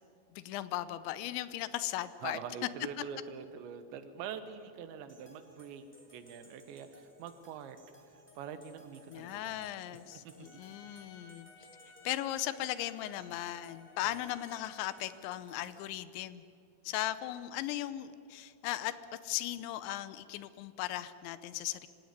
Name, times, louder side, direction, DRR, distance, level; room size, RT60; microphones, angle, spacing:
voice 1, 0.3-2.4 9.1-11.5 12.0-16.4 16.8-19.0 19.2-21.9, left 14 dB, 80° left, 14 dB, 3.0 m, -37 dB
voice 2, 2.2-7.8 8.4-9.8 10.2-10.3 14.0-14.1, right 7 dB, 75° right, 10 dB, 3.3 m, -44 dB
sound 1, 5.1-15.8, equal, 5° left, 2.2 m, -61 dB
Trumpet, 10.4-15.3, left 4 dB, 60° left, 3.6 m, -57 dB
24.5 x 17.0 x 9.6 m, 2.5 s
omnidirectional pair, 5.3 m